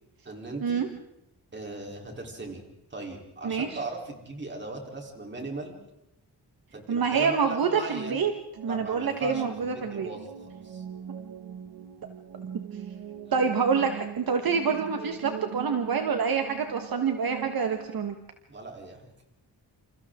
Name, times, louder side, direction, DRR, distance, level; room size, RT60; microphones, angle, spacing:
voice 1, 0.2-0.8 1.5-2.6 2.9-5.8 6.7-8.2 8.7-10.8 18.5-19.1, right 2 dB, 25° right, 1 dB, 3.8 m, -38 dB
voice 2, 6.9-7.7 8.1-8.3 8.6-10.1 13.3-18.1, right 6 dB, 55° right, 5 dB, 1.5 m, -26 dB
sound 1, 8.6-18.0, right 8 dB, 85° right, 2.0 m, -41 dB
28.5 x 28.0 x 3.8 m, 0.86 s
wide cardioid pair, 175°, 41 cm